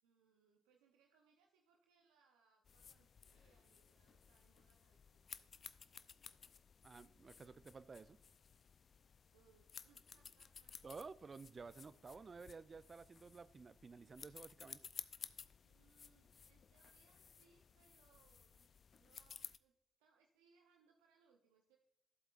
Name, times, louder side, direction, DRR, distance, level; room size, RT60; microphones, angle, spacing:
voice 1, 0.0-5.5 9.3-10.9 11.3-12.0 15.6-18.7 18.9-19.7 20.0-21.8, right 5 dB, 85° right, 0.7 m, -75 dB
sound 1, 2.7-19.6, left 6 dB, 55° left, 0.5 m, -57 dB
voice 2, 6.8-8.2 10.8-14.8, right 4 dB, 45° right, 0.4 m, -53 dB
13.5 x 8.0 x 2.5 m
hypercardioid pair, 45°, 0 cm